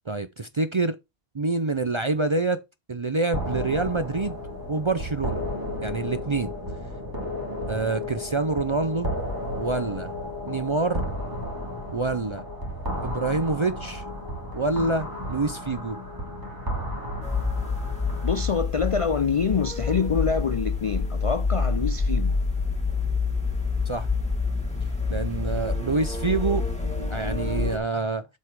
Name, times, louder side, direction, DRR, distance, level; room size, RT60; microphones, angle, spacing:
voice 1, 0.1-1.0 1.3-2.6 2.9-4.4 4.7-5.5 5.8-6.5 7.7-9.1 9.6-10.1 10.4-11.0 11.9-12.4 13.0-14.0 14.5-16.0 23.9-24.1 24.8-26.7 27.1-28.3, right 3 dB, 40° right, 0.5 m, -26 dB
sound 1, 3.3-18.6, left 1 dB, 20° right, 2.3 m, -33 dB
sound 2, 17.2-27.8, left 4 dB, 5° left, 2.6 m, -27 dB
voice 2, 18.2-22.4, left 6 dB, 50° left, 0.4 m, -26 dB
7.8 x 5.5 x 4.6 m
omnidirectional pair, 1.1 m